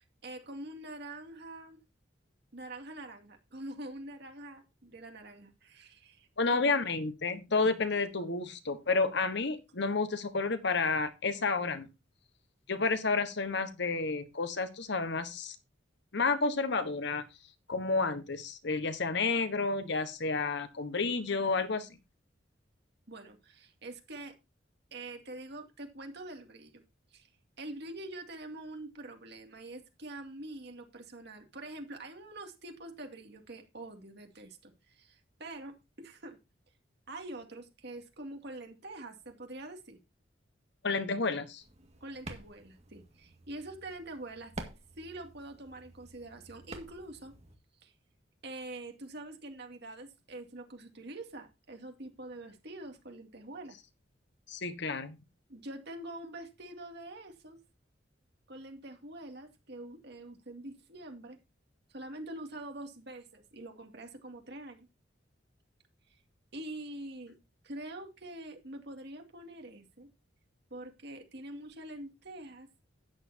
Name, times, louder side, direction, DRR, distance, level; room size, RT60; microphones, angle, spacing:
voice 1, 0.0-1.8 2.5-6.7 23.1-24.3 24.9-26.8 27.1-27.3 27.6-36.4 37.1-40.0 42.0-44.5 45.0-47.3 47.8-47.9 48.4-53.8 55.5-57.6 58.5-61.4 61.9-64.9 66.5-67.3 67.6-70.1 70.7-72.7, right 2 dB, 60° right, 4 dB, 2.4 m, -45 dB
voice 2, 6.4-11.9 12.7-15.5 16.1-17.2 17.7-21.9 40.8-41.6 54.5-55.2, left 4 dB, 65° left, 10 dB, 1.3 m, -30 dB
sound 1, 41.6-47.5, right 2 dB, 35° right, 1.9 m, -49 dB
13.0 x 9.5 x 2.8 m, 0.25 s
head